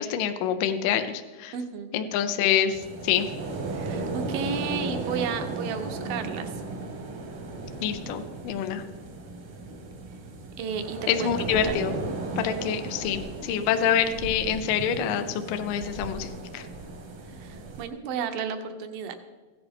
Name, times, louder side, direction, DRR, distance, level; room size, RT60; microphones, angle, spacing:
voice 1, 0.0-1.5 1.9-3.3 7.8-8.8 11.1-11.9 12.4-16.6, left 9 dB, 80° left, 8 dB, 2.0 m, -26 dB
voice 2, 1.5-1.9 3.7-6.5 10.6-11.3 11.6-11.8 17.3-19.2, right 6 dB, 75° right, 7 dB, 2.3 m, -33 dB
sound 1, 2.7-17.9, right 3 dB, 60° right, 1.5 m, -35 dB
15.5 x 10.5 x 3.5 m, 1.3 s
omnidirectional pair, 4.6 m